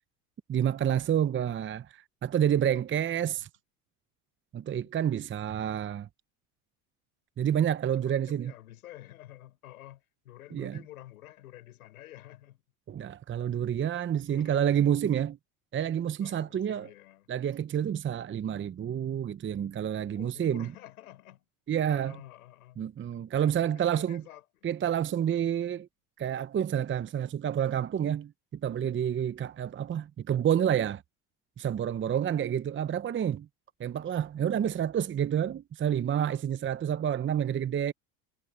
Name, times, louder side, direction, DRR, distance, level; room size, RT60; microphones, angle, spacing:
voice 1, 0.5-3.5 4.5-6.1 7.4-8.5 10.5-10.8 12.9-15.4 15.7-16.9 17.3-20.7 21.7-22.2 22.8-24.2 24.6-25.9 26.2-31.0 31.6-33.5 33.8-37.9, right 9 dB, 30° right, 0.8 m, -29 dB
voice 2, 8.0-12.6 13.9-14.6 16.2-17.3 20.1-21.5 21.9-22.8 23.4-25.1 32.0-32.2 36.8-37.2, left 14 dB, 90° left, 4.3 m, -51 dB
hypercardioid pair, 85°, 42 cm